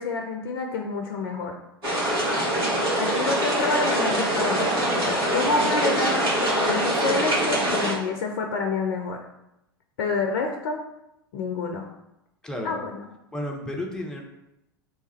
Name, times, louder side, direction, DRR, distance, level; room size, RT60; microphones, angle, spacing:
voice 1, 0.0-1.6 3.0-9.2 10.0-10.8 11.3-11.9 12.6-13.1, left 4 dB, 60° left, 3 dB, 0.4 m, -28 dB
sound 1, 1.8-7.9, right 1 dB, 70° right, 1.4 m, -24 dB
voice 2, 12.4-12.7 13.3-14.2, left 1 dB, 5° left, 0 dB, 0.7 m, -32 dB
3.2 x 2.3 x 4.3 m, 0.86 s
figure-of-eight pair, 85°, 13 cm